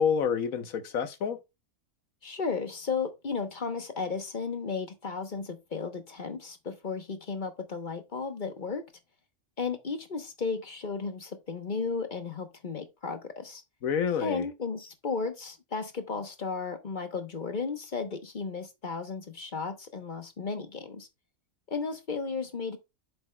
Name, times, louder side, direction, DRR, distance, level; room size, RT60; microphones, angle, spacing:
voice 1, 0.0-1.4 13.8-14.5, left 7 dB, 75° left, 1.4 m, -28 dB
voice 2, 2.2-8.8 9.6-13.6 14.2-21.1 21.7-22.8, left 4 dB, 40° left, 1.0 m, -34 dB
7.9 x 7.0 x 2.2 m
omnidirectional pair, 1.5 m